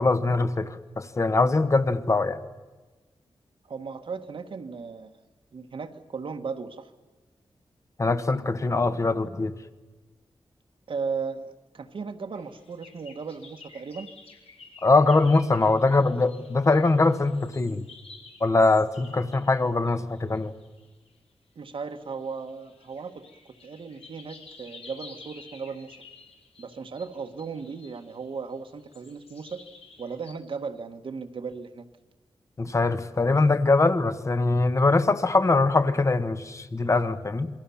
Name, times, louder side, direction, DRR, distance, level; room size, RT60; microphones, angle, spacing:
voice 1, 0.0-2.4 8.0-9.5 14.8-17.8 18.4-20.5 32.6-37.5, left 3 dB, 30° left, 11 dB, 1.2 m, -22 dB
voice 2, 3.6-5.1 5.5-6.9 10.9-14.1 21.5-23.1 23.6-26.0 26.6-29.6 30.0-31.8, right 5 dB, 65° right, 6 dB, 1.5 m, -36 dB
sound 1, 12.3-21.1 21.8-30.3, left 4 dB, 85° left, 4.3 m, -51 dB
27.0 x 22.0 x 7.1 m, 1.2 s
wide cardioid pair, 160°, 10 cm